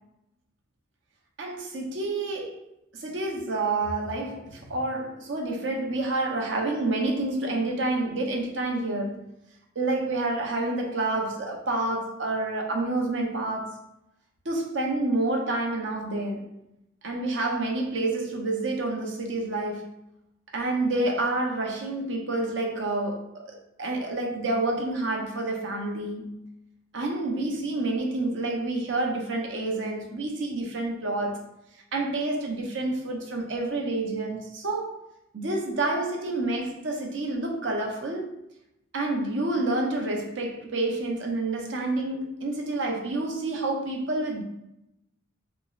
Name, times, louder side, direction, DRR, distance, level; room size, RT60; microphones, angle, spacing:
voice 1, 1.4-2.6 2.9-9.2 9.8-13.8 14.4-16.5 17.0-20.0 20.5-26.5 26.9-31.5 31.9-35.0 35.3-38.4 38.9-44.4, right 2 dB, 70° right, 0.8 m, -28 dB
5.7 x 2.0 x 2.5 m
head